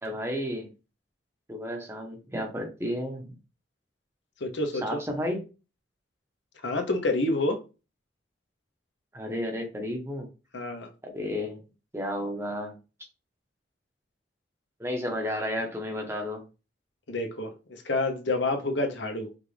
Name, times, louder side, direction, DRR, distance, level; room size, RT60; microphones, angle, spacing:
voice 1, 0.0-0.7 1.5-3.3 4.8-5.4 9.1-10.3 11.0-11.6 11.9-12.8 14.8-16.4, equal, 15° right, 0.8 m, -32 dB
voice 2, 4.4-5.0 6.6-7.6 10.5-10.9 17.1-19.3, left 2 dB, 75° left, 0.9 m, -28 dB
5.1 x 2.5 x 3.3 m
head